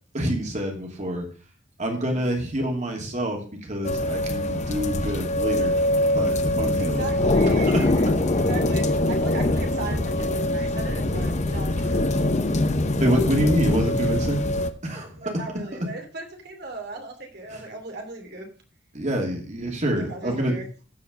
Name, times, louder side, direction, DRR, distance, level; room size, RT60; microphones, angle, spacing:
voice 1, 0.1-1.3 1.8-5.8 6.1-7.0 7.4-7.8 13.0-14.4 14.8-15.3 17.5-17.6 18.9-20.5, equal, 40° right, 2 dB, 2.6 m, -26 dB
voice 2, 1.9-2.3 6.8-12.8 15.2-18.5 19.8-20.7, right 2 dB, 60° right, 3 dB, 2.8 m, -37 dB
sound 1, 3.8-14.7, left 1 dB, 40° left, 0.8 m, -23 dB
14.5 x 5.0 x 5.2 m, 0.39 s
head